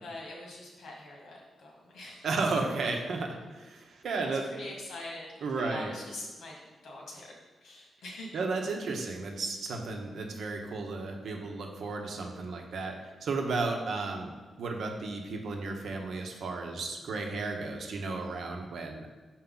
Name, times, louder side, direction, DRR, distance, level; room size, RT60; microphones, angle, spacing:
voice 1, 0.0-2.3 4.2-6.6 6.8-7.3 7.6-8.4, left 2 dB, 85° left, -2 dB, 1.7 m, -44 dB
voice 2, 2.2-4.5 5.4-5.9 8.3-19.1, right 3 dB, 70° right, 3 dB, 0.8 m, -34 dB
5.8 x 4.6 x 3.9 m, 1.3 s
wide cardioid pair, 140°, 0 cm